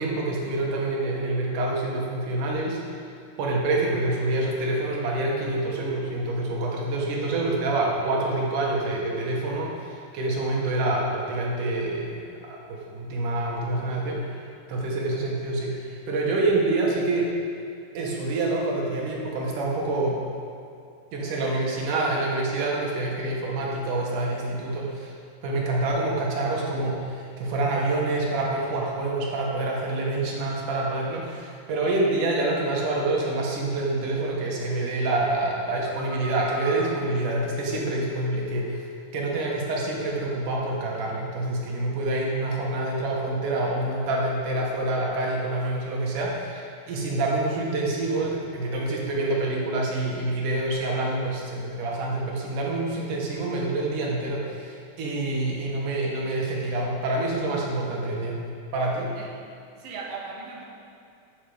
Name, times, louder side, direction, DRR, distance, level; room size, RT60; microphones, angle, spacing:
voice 1, 0.0-2.8 3.4-17.3 17.9-20.2 21.1-25.1 25.4-38.8 39.1-58.4 58.7-59.1, right 2 dB, 85° right, -2 dB, 3.1 m, -27 dB
Telephone, 35.8-38.9 39.1-39.8 40.2-40.5, equal, 65° left, 0.8 m, -39 dB
voice 2, 59.2-59.5 59.7-60.6, right 4 dB, 60° right, -2 dB, 2.3 m, -38 dB
13.5 x 6.7 x 5.1 m, 2.4 s
omnidirectional pair, 3.5 m